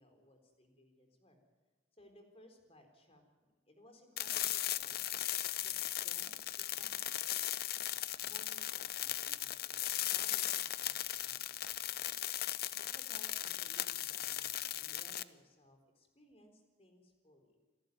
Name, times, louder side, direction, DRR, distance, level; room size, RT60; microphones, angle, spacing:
voice 1, 0.0-1.4 1.9-5.3 5.6-7.3 7.6-7.8 8.2-11.4 11.6-12.4 12.9-17.6, left 1 dB, 35° left, 4 dB, 4.1 m, -62 dB
sound 1, 4.2-15.2, left 13 dB, 55° left, 0.6 m, -37 dB
28.5 x 11.5 x 9.5 m, 1.3 s
head